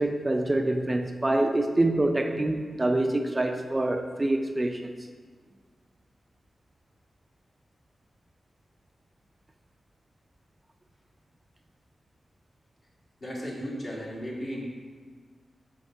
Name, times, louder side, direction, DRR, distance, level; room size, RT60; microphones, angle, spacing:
voice 1, 0.0-4.9, right 1 dB, 25° right, 5 dB, 0.4 m, -26 dB
voice 2, 13.2-14.6, equal, 45° left, -4 dB, 1.8 m, -35 dB
5.6 x 3.5 x 5.5 m, 1.5 s
cardioid pair, 70°, 0 cm